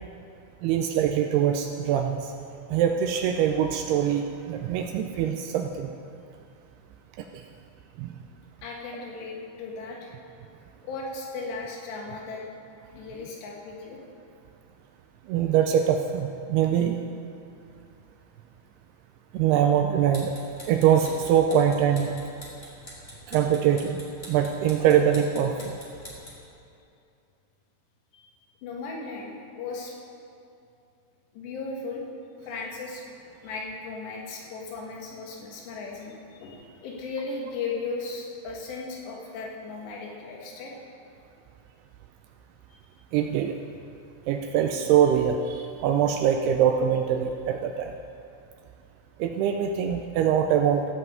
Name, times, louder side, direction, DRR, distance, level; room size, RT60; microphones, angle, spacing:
voice 1, 0.6-2.3 2.7-5.9 8.0-8.1 15.3-17.0 19.3-20.3 20.7-22.1 23.3-24.0 24.3-25.7 43.1-43.6 44.3-47.9 49.2-50.9, right 9 dB, 80° right, 4 dB, 2.5 m, -23 dB
voice 2, 8.6-10.1 10.8-12.4 12.9-14.0 28.1-28.3 28.6-29.9 31.3-32.0 32.5-33.0 33.4-40.7 42.7-42.8, left 4 dB, 85° left, -2 dB, 3.8 m, -36 dB
sound 1, 20.0-26.5, left 1 dB, 20° left, 1.5 m, -46 dB
16.0 x 5.5 x 7.8 m, 2.6 s
omnidirectional pair, 4.8 m